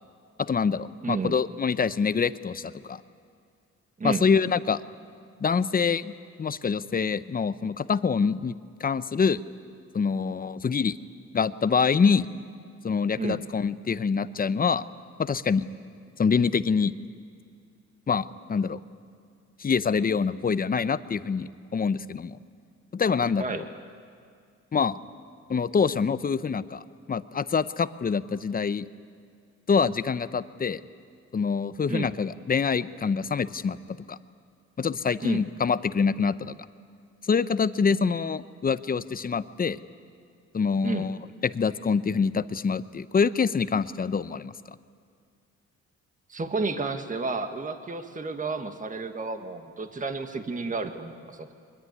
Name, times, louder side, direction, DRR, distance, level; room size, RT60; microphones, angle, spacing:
voice 1, 0.4-3.0 4.0-4.8 5.4-6.1 6.4-8.5 8.8-9.4 9.9-11.0 11.3-12.3 12.8-14.8 15.2-15.7 16.2-17.0 18.1-18.8 19.6-22.4 22.9-23.4 24.7-25.0 25.5-26.8 27.1-28.9 29.7-30.8 31.3-34.2 34.8-36.5 37.3-39.8 40.5-44.5, left 5 dB, 30° left, 14 dB, 0.8 m, -25 dB
voice 2, 1.0-1.4 4.0-4.2 13.1-13.4 23.4-23.6 31.9-32.1 35.2-35.4 40.8-41.1 46.3-51.5, right 3 dB, 25° right, 7 dB, 1.6 m, -31 dB
23.0 x 21.0 x 9.5 m, 2.2 s
cardioid pair, 90°, 30 cm